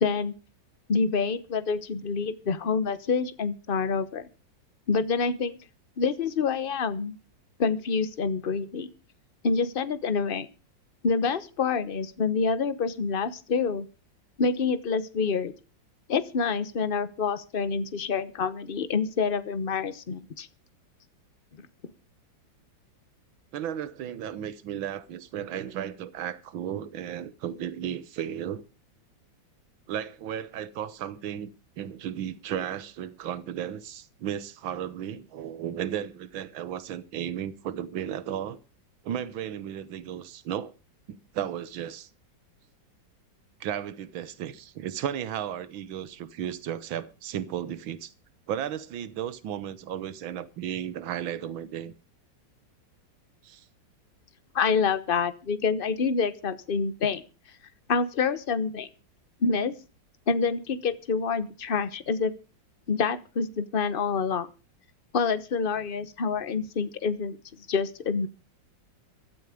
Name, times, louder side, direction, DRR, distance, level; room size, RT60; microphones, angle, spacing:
voice 1, 0.0-0.3 0.9-4.3 4.9-5.6 6.0-7.2 7.6-8.9 9.4-10.5 11.0-13.9 14.4-15.5 16.1-20.5 21.6-21.7 54.5-57.2 57.9-58.9 59.4-59.7 60.3-62.3 62.9-64.5 65.1-68.3, left 5 dB, 35° left, 1.0 m, -27 dB
voice 2, 23.5-28.6 29.9-31.5 31.8-38.6 39.0-40.7 41.1-42.1 43.6-48.1 48.5-51.9 53.4-53.7, right 10 dB, 85° right, 1.8 m, -34 dB
15.5 x 12.5 x 5.0 m
omnidirectional pair, 2.1 m